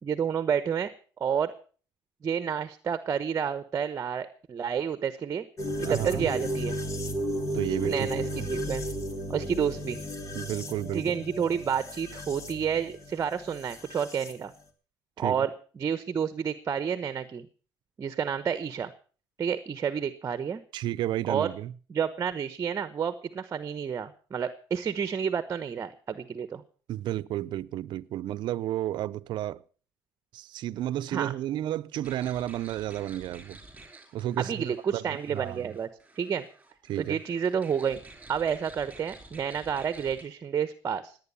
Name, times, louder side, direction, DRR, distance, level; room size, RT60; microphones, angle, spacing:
voice 1, 0.0-0.9 1.2-1.5 2.2-5.5 5.8-6.8 7.8-8.8 9.3-10.0 10.9-14.5 15.2-17.5 18.0-18.9 19.4-20.6 21.3-21.5 21.9-26.6 31.1-31.3 34.4-35.9 36.2-36.5 37.0-38.0 38.3-41.2, right 7 dB, 35° right, 1.1 m, -30 dB
sound 1, 5.6-14.3, equal, 35° left, 2.7 m, -34 dB
voice 2, 5.8-6.3 7.5-8.1 10.3-11.1 15.2-15.5 20.7-21.7 26.9-29.6 30.3-33.6 34.1-35.8 36.9-37.2, right 13 dB, 60° right, 0.7 m, -32 dB
sound 2, 32.0-40.2, right 2 dB, 15° right, 4.9 m, -51 dB
18.5 x 9.5 x 7.0 m
cardioid pair, 115°, 9 cm